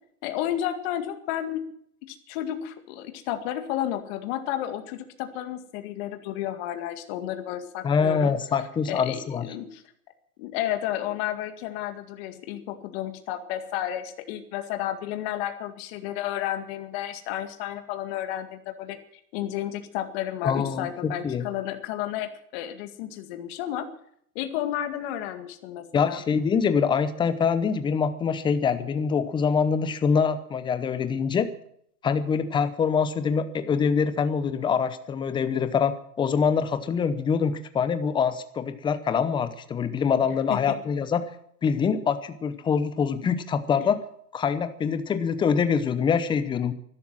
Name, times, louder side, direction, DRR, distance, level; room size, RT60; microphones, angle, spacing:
voice 1, 0.2-1.6 2.1-8.3 8.9-9.8 10.4-19.0 19.3-23.9 24.4-26.2 40.5-40.8, left 12 dB, 40° left, 8 dB, 2.0 m, -32 dB
voice 2, 7.8-9.4 20.4-21.4 25.9-31.5 32.0-41.2 41.6-44.0 44.3-46.7, left 6 dB, 10° left, 12 dB, 0.7 m, -24 dB
13.5 x 12.0 x 7.6 m, 0.67 s
hypercardioid pair, 140°, 46 cm